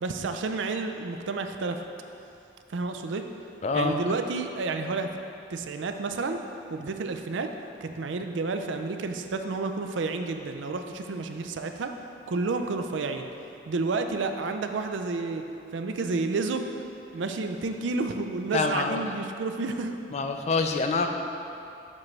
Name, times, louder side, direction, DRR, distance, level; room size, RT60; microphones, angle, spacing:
voice 1, 0.0-1.8 2.7-3.2 3.7-5.1 5.5-6.4 6.7-7.5 7.8-11.9 12.3-13.3 13.7-15.5 15.7-16.6 17.1-20.0, right 3 dB, 80° right, 6 dB, 0.4 m, -30 dB
voice 2, 3.6-4.0 18.5-19.0 20.1-21.1, left 4 dB, 35° left, 5 dB, 0.3 m, -26 dB
7.4 x 3.2 x 5.9 m, 2.7 s
head